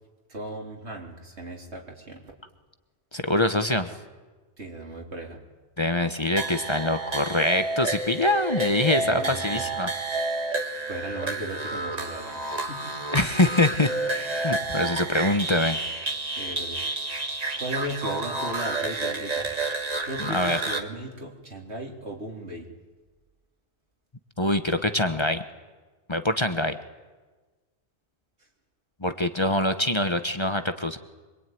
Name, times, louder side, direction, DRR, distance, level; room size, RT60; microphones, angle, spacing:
voice 1, 0.3-2.2 4.6-5.4 9.0-9.7 10.9-13.0 14.6-14.8 16.4-16.8 17.6-19.6 20.1-22.7, right 1 dB, 80° right, 1 dB, 4.0 m, -36 dB
voice 2, 3.1-3.9 5.8-9.9 13.1-15.8 20.3-20.6 24.4-25.4 26.1-26.8 29.0-31.0, left 1 dB, 25° left, 9 dB, 1.1 m, -24 dB
sound 1, 6.4-20.8, right 2 dB, 35° right, 1.8 m, -30 dB
24.5 x 23.0 x 9.4 m, 1.3 s
omnidirectional pair, 1.1 m